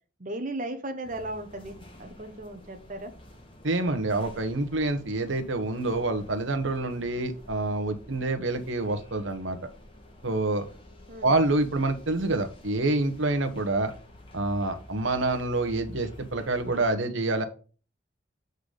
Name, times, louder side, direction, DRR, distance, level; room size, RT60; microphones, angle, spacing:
voice 1, 0.2-3.1 11.1-11.4, right 1 dB, 40° right, 4 dB, 1.0 m, -36 dB
sound 1, 1.0-16.9, left 1 dB, 25° left, 1.3 m, -49 dB
voice 2, 3.6-9.6 10.2-10.7 11.2-13.9 14.3-17.4, right 2 dB, 75° right, 7 dB, 1.2 m, -27 dB
8.1 x 4.0 x 5.0 m, 0.37 s
head